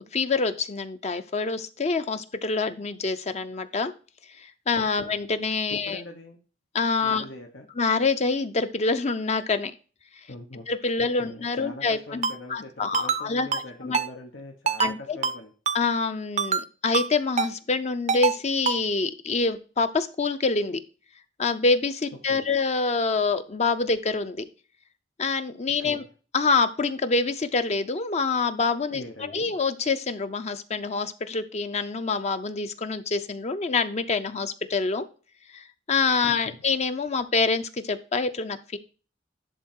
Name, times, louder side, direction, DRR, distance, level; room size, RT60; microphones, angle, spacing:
voice 1, 0.1-3.9 4.4-6.0 6.7-7.2 7.8-9.7 10.7-14.0 14.8-15.2 15.7-20.8 21.4-24.4 25.2-26.0 26.3-35.1 35.5-38.8, left 4 dB, 35° left, 10 dB, 0.6 m, -26 dB
voice 2, 4.7-5.2 5.7-6.4 7.0-7.7 10.3-10.7 11.2-15.5 22.2-22.5 25.8-26.1 28.9-29.5 36.4-36.6, left 2 dB, 90° left, 2 dB, 1.1 m, -42 dB
Ringtone, 12.2-12.3 12.9-13.2 13.5-13.6 13.9-14.1 14.7-14.9 15.2-15.4 15.7-15.8 16.4-16.6 16.9-17.1 17.4-17.5 18.1-18.4 18.7-18.8, right 6 dB, 40° right, 0.5 m, -25 dB
11.0 x 3.8 x 4.4 m, 0.36 s
head